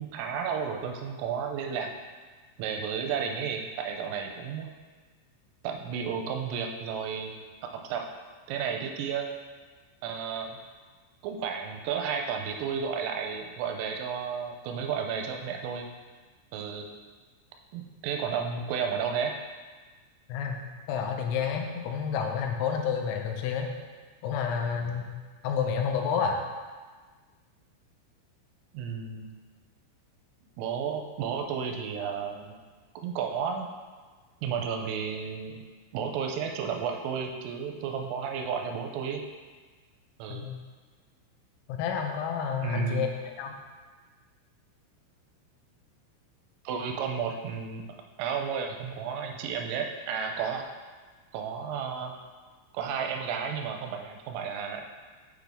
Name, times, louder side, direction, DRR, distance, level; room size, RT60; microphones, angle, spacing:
voice 1, 0.0-1.9 2.6-4.7 5.6-7.3 7.7-8.1 8.5-9.3 10.0-10.6 11.2-15.9 16.5-16.9 17.7-19.3 28.7-29.3 30.6-32.6 33.0-33.7 34.4-35.6 35.9-39.2 40.2-40.5 42.6-43.1 46.6-47.9 48.2-50.7 51.3-52.1 52.7-54.8, right 6 dB, 85° right, 3 dB, 3.1 m, -32 dB
voice 2, 20.9-23.7 24.2-25.1 25.4-26.4 40.3-40.6 41.7-43.1 43.4-43.5, left 7 dB, 85° left, 3 dB, 3.4 m, -29 dB
8.2 x 6.0 x 3.5 m, 1.4 s
omnidirectional pair, 5.9 m